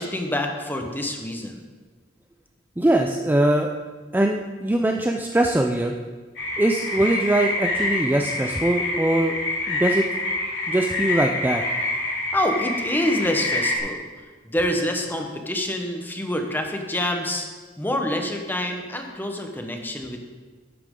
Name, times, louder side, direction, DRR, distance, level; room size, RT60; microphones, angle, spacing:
voice 1, 0.0-1.6 12.3-14.1 14.4-17.5 17.8-20.2, left 1 dB, 10° left, 3 dB, 1.1 m, -26 dB
voice 2, 2.8-3.7 4.1-5.9 6.6-9.4 9.7-10.1 10.7-11.6, right 1 dB, 10° right, 3 dB, 0.4 m, -21 dB
sound 1, 6.4-13.8, left 2 dB, 70° left, 2.5 m, -27 dB
11.5 x 8.5 x 3.8 m, 1.4 s
head